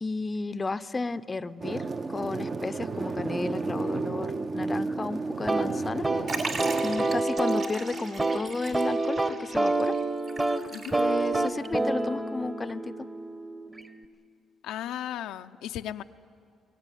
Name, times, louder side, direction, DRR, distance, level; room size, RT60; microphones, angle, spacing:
voice 1, 0.0-6.1 6.3-6.5 6.8-9.9 11.0-13.1, left 3 dB, 25° left, 14 dB, 0.5 m, -33 dB
Abashiri wind snow bars, 1.6-7.2, right 3 dB, 40° right, 0.7 m, -32 dB
sound 1, 5.5-14.0, right 2 dB, 20° right, 1.1 m, -28 dB
Liquid, 6.3-11.4 11.7-11.8 12.7-12.8, right 3 dB, 55° right, 2.7 m, -38 dB
voice 2, 14.6-16.0, left 11 dB, 90° left, 8 dB, 0.5 m, -35 dB
21.5 x 17.5 x 9.9 m, 2.4 s
cardioid pair, 90°, 0 cm